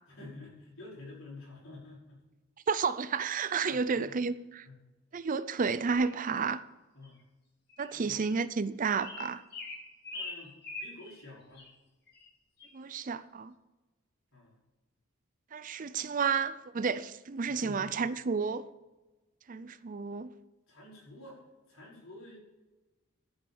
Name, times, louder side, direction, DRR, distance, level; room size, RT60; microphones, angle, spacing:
voice 1, 0.1-2.2 3.6-4.0 4.6-4.7 6.9-7.2 7.9-8.2 10.1-11.7 14.3-14.6 17.4-18.0 20.7-22.4, left 2 dB, 70° left, 5.2 m, -49 dB
voice 2, 2.7-4.7 5.1-6.6 7.8-9.4 12.7-13.5 15.5-18.7 19.5-20.3, right 5 dB, 40° right, 0.5 m, -31 dB
sound 1, 5.9-6.1 7.0-7.1 7.7-7.9 8.2-8.4 9.0-11.2 11.5-11.7 12.1-12.3 12.6-12.7, left 3 dB, 50° left, 2.8 m, -43 dB
12.0 x 7.2 x 7.1 m
head